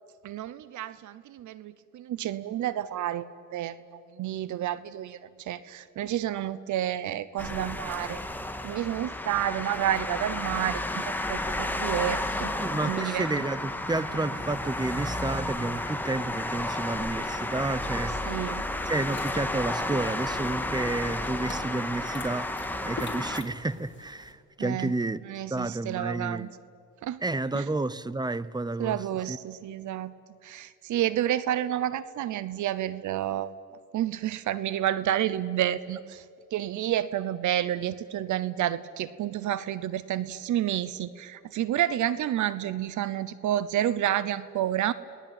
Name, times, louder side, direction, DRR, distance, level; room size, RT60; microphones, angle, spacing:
voice 1, 0.2-8.2 8.6-12.5 12.8-13.3 18.3-18.6 24.6-24.9 25.2-26.5 27.0-27.2 27.5-27.6 28.8-30.1 30.4-33.5 33.9-36.2 36.5-44.9, right 12 dB, 75° right, 0.8 m, -30 dB
sound 1, 7.4-23.4, left 1 dB, 5° left, 1.9 m, -32 dB
voice 2, 12.6-18.4 18.8-25.2 25.5-26.5 27.2-29.0 29.3-29.4, right 2 dB, 15° right, 0.8 m, -31 dB
sound 2, 18.7-24.3, left 4 dB, 40° left, 3.3 m, -45 dB
28.0 x 19.5 x 8.9 m
cardioid pair, 90°, 30 cm